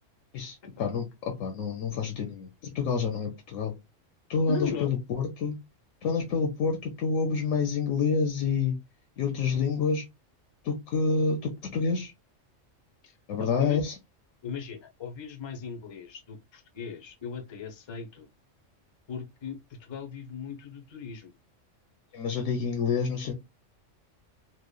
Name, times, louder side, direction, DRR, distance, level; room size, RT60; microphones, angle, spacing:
voice 1, 0.3-3.7 4.3-5.6 6.0-8.8 9.2-10.0 10.6-12.1 13.3-13.9 22.1-23.3, left 5 dB, 85° left, 1.0 m, -28 dB
voice 2, 4.5-4.9 13.0-13.8 14.4-18.3 19.1-21.3, left 7 dB, 40° left, 0.4 m, -38 dB
3.0 x 2.1 x 2.2 m
omnidirectional pair, 1.3 m